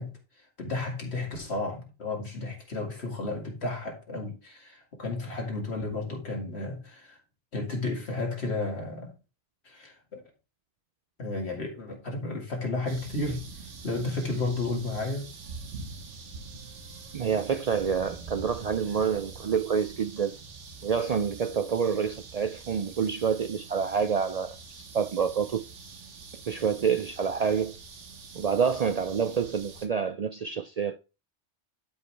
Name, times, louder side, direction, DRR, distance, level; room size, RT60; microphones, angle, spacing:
voice 1, 0.0-7.2 7.5-9.1 9.6-10.2 11.2-13.5 13.8-15.3, left 2 dB, 65° left, 2.3 m, -33 dB
sound 1, 12.9-29.9, right 4 dB, 90° right, 1.6 m, -45 dB
voice 2, 17.1-20.4 20.8-24.6 24.9-25.6 26.5-27.8 28.4-31.0, right 6 dB, 65° right, 0.4 m, -27 dB
11.5 x 5.3 x 3.3 m
omnidirectional pair, 1.2 m